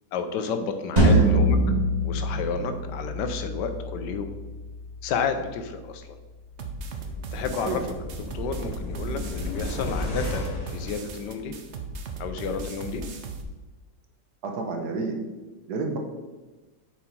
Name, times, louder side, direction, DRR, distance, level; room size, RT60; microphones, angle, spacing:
voice 1, 0.1-1.6 2.0-4.3 5.0-6.1 7.3-7.8 8.3-11.5 12.2-13.0, left 5 dB, 85° left, 8 dB, 1.3 m, -31 dB
sound 1, 1.0-6.0, right 1 dB, 25° right, 1.8 m, -25 dB
voice 2, 1.0-1.3 7.5-7.8 14.4-15.2 15.7-16.0, right 3 dB, 70° right, 4 dB, 1.5 m, -29 dB
sound 2, 6.5-11.7 12.1-12.2, left 1 dB, 30° left, 0.7 m, -34 dB
sound 3, 6.6-13.4, right 3 dB, 55° right, 0.8 m, -37 dB
7.3 x 5.0 x 4.5 m, 1.2 s
omnidirectional pair, 1.8 m